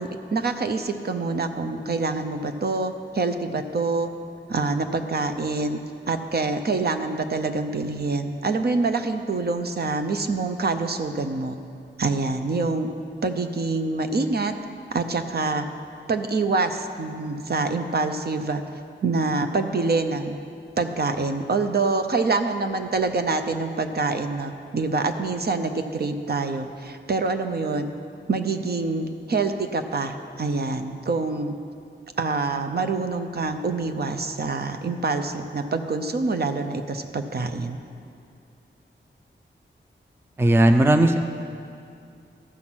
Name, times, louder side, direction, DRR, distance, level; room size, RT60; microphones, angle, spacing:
voice 1, 0.0-4.1 4.5-11.6 12.0-12.9 13.2-14.5 14.9-15.7 16.1-18.6 19.0-20.3 20.8-27.9 28.3-31.5 32.2-37.8, right 3 dB, 55° right, 7 dB, 0.6 m, -26 dB
voice 2, 40.4-41.2, right 1 dB, 10° right, 7 dB, 0.4 m, -16 dB
14.0 x 5.8 x 6.1 m, 2.4 s
wide cardioid pair, 115°, 20 cm